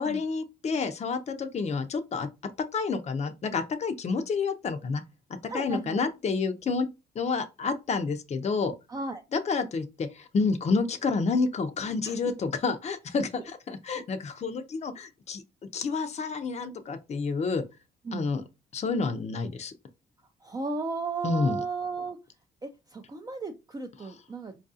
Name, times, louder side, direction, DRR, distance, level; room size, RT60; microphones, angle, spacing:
voice 1, 0.0-2.3 2.7-5.0 5.5-6.9 7.2-8.7 9.3-15.4 15.7-17.6 18.1-18.4 18.7-19.7 21.2-21.6, left 4 dB, 35° left, 0.5 m, -29 dB
voice 2, 5.5-6.0 8.9-9.2 12.0-12.2 13.9-14.0 18.0-18.3 20.4-22.2 22.6-24.6, right 4 dB, 20° right, 0.4 m, -35 dB
4.5 x 2.4 x 2.6 m
cardioid pair, 90°, 20 cm